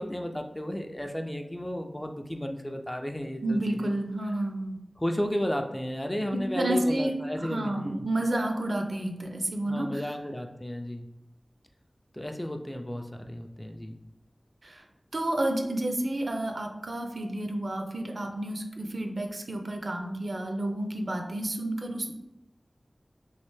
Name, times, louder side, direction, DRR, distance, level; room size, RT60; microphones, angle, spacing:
voice 1, 0.0-3.9 5.0-8.0 9.7-11.1 12.1-14.0, equal, 20° left, 4 dB, 0.4 m, -33 dB
voice 2, 3.4-4.8 6.3-7.1 7.4-10.1 14.6-14.8 15.1-22.1, right 1 dB, 70° right, 3 dB, 0.4 m, -30 dB
3.1 x 2.8 x 3.1 m, 0.86 s
wide cardioid pair, 60°, 0 cm